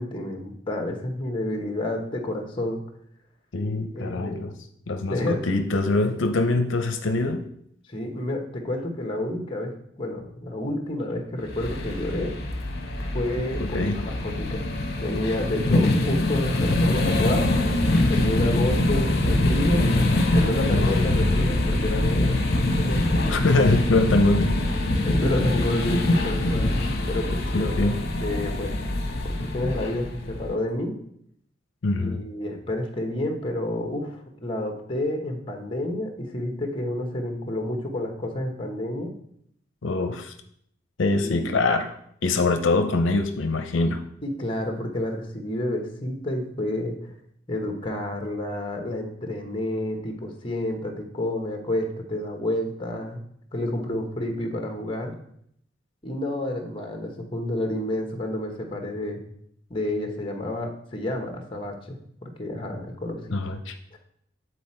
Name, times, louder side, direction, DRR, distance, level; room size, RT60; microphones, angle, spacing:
voice 1, 0.0-2.8 3.9-4.5 5.1-5.4 6.5-6.7 7.9-12.4 13.1-14.6 15.0-17.5 18.1-19.9 20.3-22.4 22.7-23.0 25.0-26.8 27.1-27.9 28.2-28.8 29.2-31.0 32.0-39.1 41.2-41.5 44.2-47.1 47.5-53.2 53.5-55.2 56.0-59.2 59.7-63.4 63.9-64.0, left 1 dB, 25° left, 3 dB, 1.0 m, -29 dB
voice 2, 3.5-4.5 4.9-7.5 13.6-14.0 20.7-21.1 23.3-24.6 27.5-27.9 31.8-32.2 39.8-40.3 41.0-41.9 42.2-44.0 63.3-63.7, left 2 dB, 75° left, 7 dB, 0.6 m, -23 dB
sound 1, 11.5-30.5, left 1 dB, 55° left, 1.0 m, -24 dB
9.1 x 4.1 x 4.3 m, 0.70 s
head